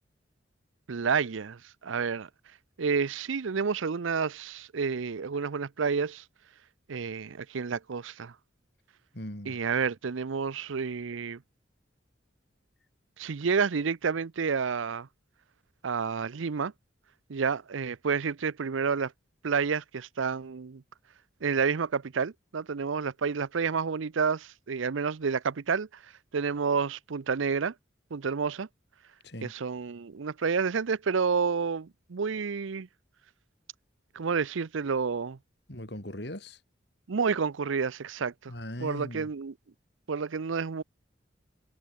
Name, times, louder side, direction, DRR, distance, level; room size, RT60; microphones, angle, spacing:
voice 1, 0.9-2.3 2.8-6.2 6.9-8.3 9.5-11.4 13.2-15.1 15.8-16.7 17.3-19.1 19.4-20.8 21.4-25.9 26.3-27.7 28.1-28.7 29.4-32.9 34.1-35.4 37.1-38.5 38.8-39.5 40.1-40.8, right 5 dB, 80° right, 0.6 m, -29 dB
voice 2, 9.1-9.6 29.2-29.5 35.7-36.6 38.5-39.3, left 1 dB, 55° left, 4.2 m, -39 dB
head